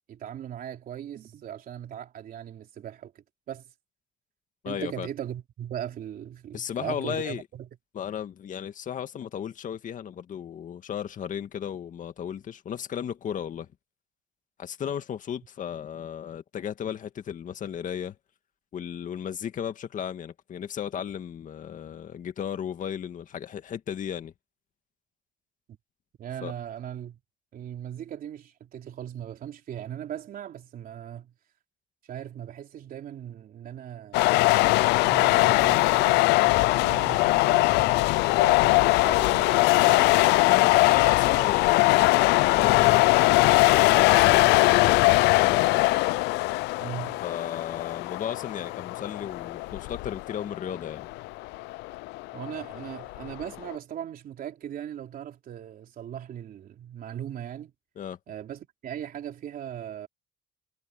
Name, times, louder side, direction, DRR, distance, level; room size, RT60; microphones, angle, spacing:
voice 1, 0.1-3.7 4.7-7.7 26.2-27.2 27.5-31.3 32.1-34.3 35.0-40.1 46.8-47.2 52.3-57.7 58.3-60.1, right 10 dB, 60° right, 3.5 m, -39 dB
voice 2, 4.6-5.1 6.5-7.4 7.9-13.7 14.6-18.2 18.7-24.3 26.4-26.5 40.4-43.3 44.0-45.7 47.2-51.1 58.0-58.2, left 9 dB, 50° left, 2.0 m, -35 dB
sound 1, 34.1-53.7, left 21 dB, 90° left, 0.5 m, -21 dB
cardioid pair, 110°, 17 cm